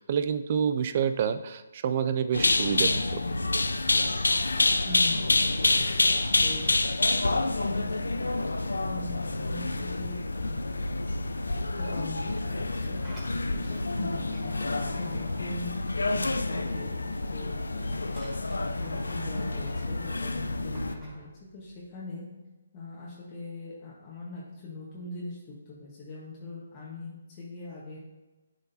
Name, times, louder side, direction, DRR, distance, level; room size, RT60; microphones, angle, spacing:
voice 1, 0.0-3.2, right 7 dB, 40° right, 10 dB, 0.3 m, -28 dB
sound 1, 2.3-20.9, left 2 dB, 85° left, 0.4 m, -28 dB
sound 2, 4.4-17.6, left 1 dB, 75° right, 1.5 m, -46 dB
voice 2, 4.9-6.6 7.1-8.4 8.8-10.7 11.8-12.2 12.4-13.0 13.5-18.0 18.5-22.3 22.7-28.0, left 2 dB, 30° left, -6 dB, 1.2 m, -42 dB
Sliding door, 12.7-16.9 17.2-21.9, right 1 dB, 15° right, 2.0 m, -49 dB
10.5 x 3.7 x 2.7 m, 1.1 s
figure-of-eight pair, 145°, 0 cm